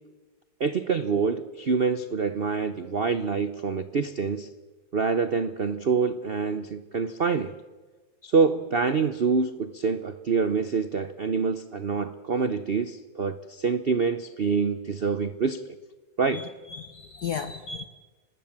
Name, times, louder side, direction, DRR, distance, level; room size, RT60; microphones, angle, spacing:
voice 1, 0.6-4.5 4.9-7.5 8.2-15.8 16.2-16.4, right 5 dB, 85° right, 11 dB, 0.5 m, -26 dB
voice 2, 16.3-17.9, left 6 dB, 60° left, 10 dB, 1.3 m, -35 dB
25.0 x 19.5 x 7.3 m, 1.3 s
omnidirectional pair, 2.2 m